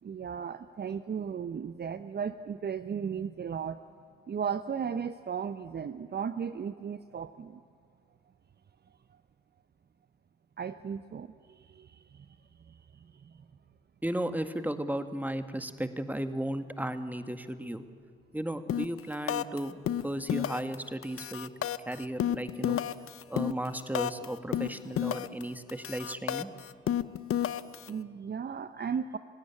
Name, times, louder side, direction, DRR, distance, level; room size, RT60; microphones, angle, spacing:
voice 1, 0.0-3.8 4.3-7.6 9.1-9.2 10.6-12.4 12.7-13.5 27.9-29.2, right 7 dB, 35° right, 11 dB, 0.8 m, -36 dB
voice 2, 14.0-17.8 18.3-19.8 20.0-21.5 21.9-22.8 23.3-26.5, right 1 dB, 5° right, 9 dB, 1.9 m, -35 dB
sound 1, 18.7-19.0 19.3-19.6 19.9-20.8 21.0-24.3 24.5-25.4 25.7-27.9, left 10 dB, 50° left, 0.9 m, -31 dB
29.5 x 16.5 x 8.7 m, 2.2 s
hypercardioid pair, 50°, 29 cm